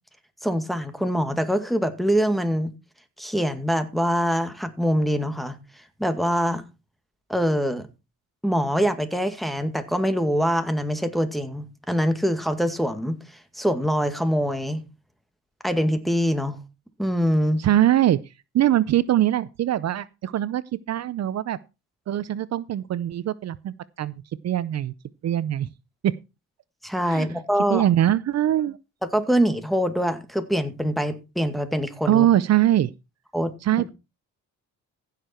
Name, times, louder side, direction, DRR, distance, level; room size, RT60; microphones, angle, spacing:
voice 1, 0.4-2.7 3.2-5.6 6.0-6.6 7.3-7.9 8.4-14.8 15.6-16.6 17.0-17.6 26.8-27.8 29.1-32.3 33.3-33.5, equal, ahead, 2.0 m, -24 dB
voice 2, 17.6-18.2 18.5-21.6 22.1-24.9 25.2-25.7 26.0-26.2 27.1-27.3 27.7-28.8 32.1-32.9 33.6-33.9, right 12 dB, 60° right, 0.7 m, -22 dB
15.5 x 6.7 x 4.5 m
cardioid pair, 90°, 30 cm